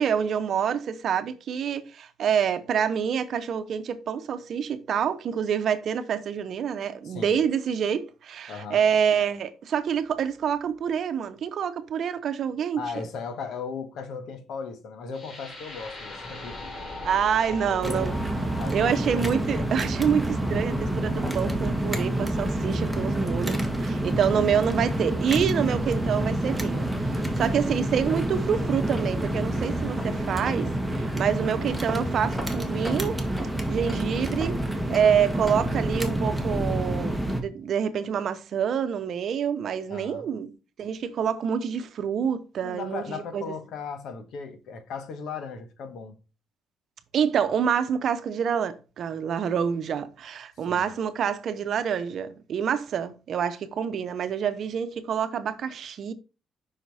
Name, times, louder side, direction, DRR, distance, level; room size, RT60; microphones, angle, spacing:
voice 1, 0.0-12.8 17.0-18.2 18.7-33.2 33.7-34.6 34.9-40.5 40.8-43.4 47.1-56.1, right 8 dB, 65° right, 0.8 m, -27 dB
voice 2, 7.0-7.4 8.5-8.8 12.8-16.8 17.5-18.0 18.6-19.3 27.5-27.7 39.9-40.3 42.6-46.2 50.7-50.9, left 5 dB, 75° left, 1.3 m, -37 dB
sound 1, 15.1-23.1, left 2 dB, 40° left, 4.0 m, -41 dB
sound 2, 17.8-37.4, right 1 dB, ahead, 1.5 m, -28 dB
5.7 x 4.6 x 4.1 m
cardioid pair, 90°, 0 cm